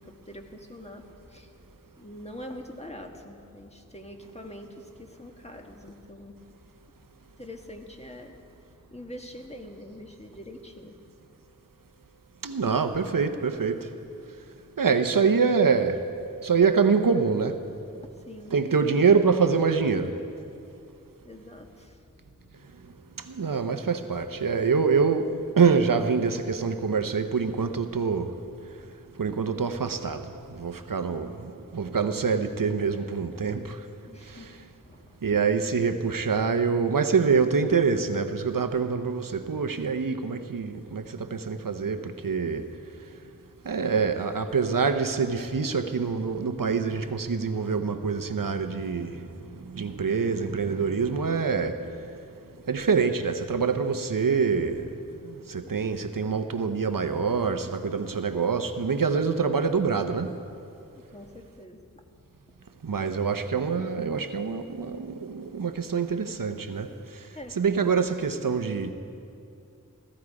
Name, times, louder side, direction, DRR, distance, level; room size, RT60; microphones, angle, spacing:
voice 1, 0.0-1.5 2.0-6.4 7.4-8.3 8.9-10.9 18.2-18.6 21.2-23.3 34.1-35.2 49.3-49.9 60.9-61.8 67.3-67.6, left 1 dB, 20° left, 1.5 m, -44 dB
voice 2, 12.4-13.9 14.8-16.0 16.4-17.6 18.5-20.2 23.3-28.4 29.2-33.8 34.3-34.5 35.2-42.7 43.6-49.2 49.7-51.9 52.7-54.9 55.2-60.4 62.8-66.9 67.6-68.9, right 5 dB, 75° right, 0.8 m, -25 dB
17.0 x 14.0 x 4.8 m
wide cardioid pair, 40°, 33 cm